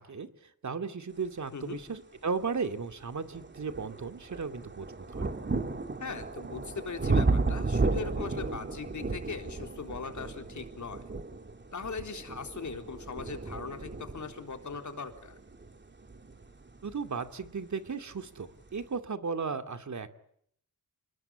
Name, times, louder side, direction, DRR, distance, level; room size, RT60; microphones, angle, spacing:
voice 1, 0.0-5.2 16.8-20.1, right 5 dB, 55° right, 8 dB, 2.5 m, -35 dB
sound 1, 2.2-2.3 2.9-17.6 18.5-18.6, right 3 dB, 30° right, 3.1 m, -34 dB
voice 2, 6.0-11.0 11.7-15.4, left 5 dB, 55° left, 6 dB, 3.9 m, -40 dB
28.5 x 20.5 x 8.8 m, 0.69 s
wide cardioid pair, 120°, 34 cm